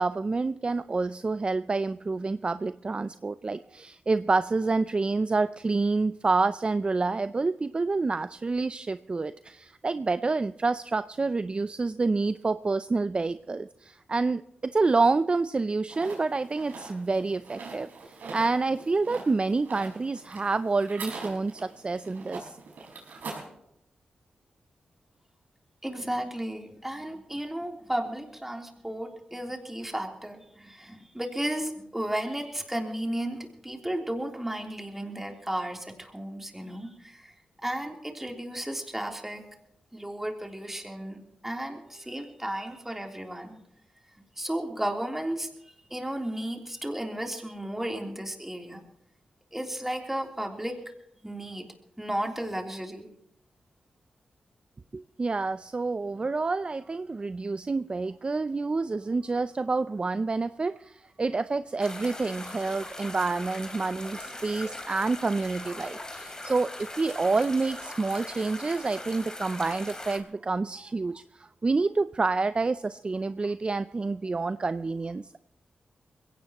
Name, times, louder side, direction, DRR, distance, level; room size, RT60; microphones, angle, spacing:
voice 1, 0.0-22.6 54.9-75.4, right 3 dB, 35° right, 13 dB, 0.5 m, -28 dB
sound 1, 15.9-23.5, right 4 dB, 80° right, 5.0 m, -43 dB
voice 2, 25.8-37.3 37.6-39.4 39.9-43.6 44.4-45.5 45.9-48.8 49.5-50.8 51.2-51.7 52.0-53.1, right 1 dB, 10° right, 2 dB, 3.4 m, -34 dB
sound 2, 61.8-70.2, left 1 dB, 25° left, 3.4 m, -40 dB
21.5 x 17.0 x 3.0 m, 0.79 s
cardioid pair, 55°, 3 cm